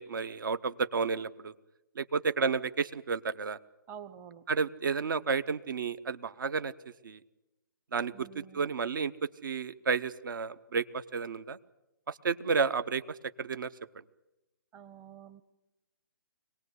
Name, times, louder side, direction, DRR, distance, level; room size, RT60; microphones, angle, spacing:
voice 1, 0.0-1.5 2.0-3.6 4.5-6.7 7.0-7.2 7.9-9.1 9.4-11.6 12.1-13.7, right 5 dB, 65° right, 15 dB, 0.9 m, -31 dB
voice 2, 3.9-4.4 8.1-8.7 14.7-15.4, right 8 dB, 20° right, 11 dB, 0.8 m, -48 dB
24.5 x 18.5 x 8.2 m, 0.97 s
hypercardioid pair, 150°, 12 cm